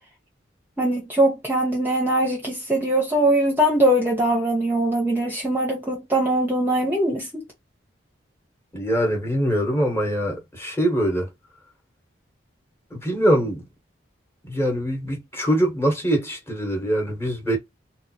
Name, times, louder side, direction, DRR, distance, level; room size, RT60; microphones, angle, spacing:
voice 1, 0.8-7.4, right 1 dB, 10° right, 0.9 m, -21 dB
voice 2, 8.7-11.3 12.9-13.7 14.4-17.6, equal, 15° left, 1.2 m, -23 dB
3.5 x 2.4 x 2.8 m
head